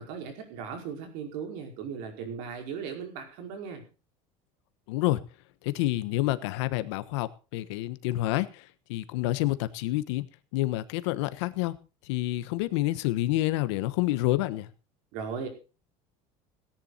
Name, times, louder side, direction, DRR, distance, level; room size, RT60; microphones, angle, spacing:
voice 1, 0.0-3.8 15.1-15.5, right 6 dB, 70° right, 4 dB, 5.1 m, -37 dB
voice 2, 4.9-5.2 5.6-10.3 10.5-11.7 12.0-14.7, left 17 dB, 85° left, 14 dB, 1.3 m, -28 dB
17.5 x 10.5 x 4.2 m, 0.33 s
cardioid pair, 145°, 14 cm